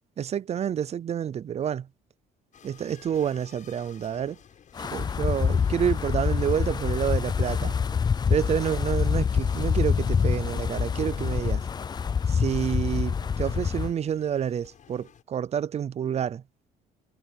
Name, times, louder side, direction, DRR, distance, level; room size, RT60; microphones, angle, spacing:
voice 1, 0.2-1.9 2.6-4.4 4.9-7.7 8.3-11.6 12.3-16.4, right 9 dB, 40° right, 0.6 m, -28 dB
sound 1, 2.5-15.2, left 8 dB, 50° left, 7.4 m, -53 dB
Wind, 4.8-13.9, left 6 dB, 25° left, 0.5 m, -26 dB
cardioid pair, 110°, 17 cm